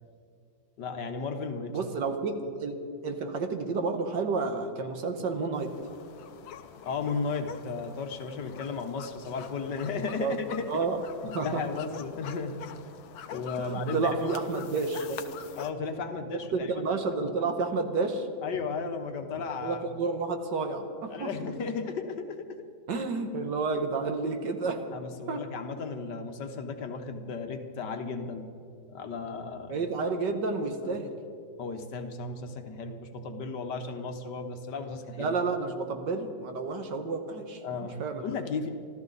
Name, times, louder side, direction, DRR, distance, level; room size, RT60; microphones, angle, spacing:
voice 1, 0.8-1.8 6.8-10.8 11.2-12.9 13.3-14.4 15.6-17.0 18.4-19.8 21.1-22.7 22.9-23.0 24.9-28.5 28.9-29.8 30.9-31.0 31.6-35.3 37.6-38.7, left 4 dB, 65° left, 6 dB, 1.6 m, -35 dB
voice 2, 1.7-5.7 10.2-10.4 10.7-11.0 11.3-11.6 13.6-15.2 16.5-18.3 19.6-21.3 22.9-24.8 25.3-25.4 29.7-31.1 35.2-38.2, right 4 dB, 65° right, 6 dB, 1.7 m, -30 dB
sound 1, 5.5-15.7, left 8 dB, 85° left, 1.6 m, -45 dB
25.0 x 14.5 x 4.0 m, 2.3 s
omnidirectional pair, 2.1 m